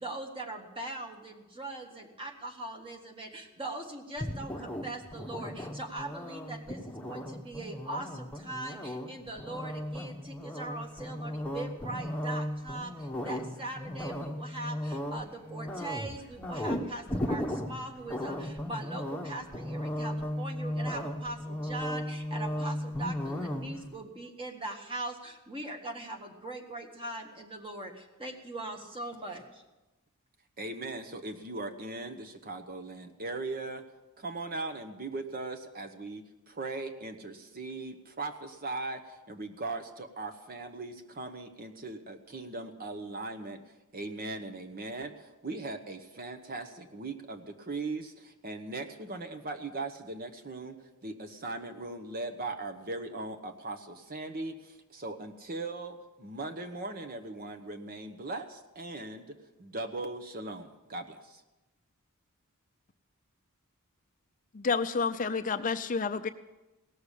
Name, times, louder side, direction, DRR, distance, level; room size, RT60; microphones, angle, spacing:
voice 1, 0.0-29.4, right 2 dB, 25° right, 3 dB, 1.7 m, -41 dB
sound 1, 4.2-24.0, left 1 dB, 5° left, 1.1 m, -36 dB
voice 2, 30.6-33.8 34.2-43.6 43.9-59.3 59.6-61.4, right 2 dB, 40° right, 8 dB, 1.0 m, -39 dB
voice 3, 64.5-66.3, left 5 dB, 35° left, 10 dB, 0.5 m, -29 dB
17.5 x 6.8 x 10.0 m, 1.1 s
head